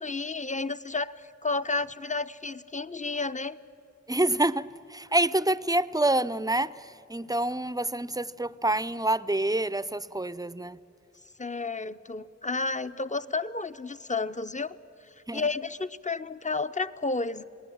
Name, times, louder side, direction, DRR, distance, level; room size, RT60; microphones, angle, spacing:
voice 1, 0.0-3.6 11.4-14.8 15.3-17.4, left 3 dB, 25° left, 13 dB, 0.7 m, -31 dB
voice 2, 4.1-10.8 15.3-15.4, right 1 dB, 10° right, 17 dB, 0.6 m, -27 dB
28.0 x 19.0 x 8.7 m, 2.7 s
wide cardioid pair, 50°, 29 cm